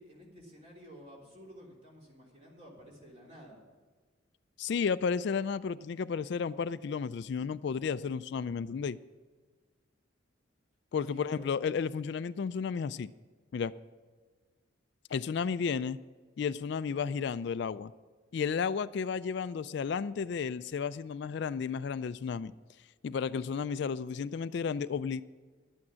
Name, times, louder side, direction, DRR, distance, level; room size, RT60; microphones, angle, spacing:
voice 1, 0.0-3.6 11.0-11.6, equal, 30° right, 3.2 m, -52 dB
voice 2, 4.6-9.0 10.9-13.1 13.5-13.7 15.1-16.0 16.4-17.9 18.3-22.5 23.0-25.2, left 6 dB, 60° left, 0.3 m, -33 dB
12.0 x 8.5 x 6.3 m
head